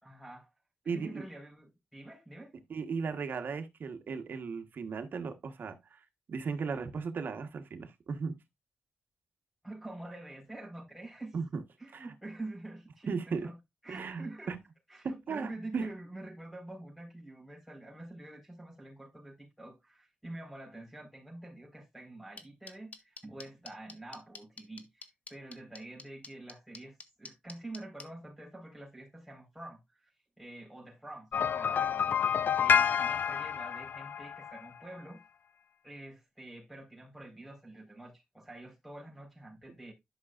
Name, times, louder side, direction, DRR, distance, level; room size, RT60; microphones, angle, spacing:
voice 1, 0.0-0.5 0.8-2.5 9.6-11.4 11.8-13.6 13.8-14.6 14.9-30.1 30.4-32.3 32.6-35.2 35.8-39.9, right 2 dB, ahead, 4.5 m, -46 dB
voice 2, 0.9-1.2 2.7-6.0 6.3-8.3 11.3-11.6 11.9-12.1 13.1-13.5 13.9-14.6 15.0-15.9, right 5 dB, 70° right, 1.3 m, -36 dB
sound 1, 22.4-28.0, left 3 dB, 45° left, 1.2 m, -46 dB
Repose Lost Melody, 31.3-34.7, left 7 dB, 70° left, 0.4 m, -28 dB
11.5 x 6.0 x 2.5 m
cardioid pair, 70°, 3 cm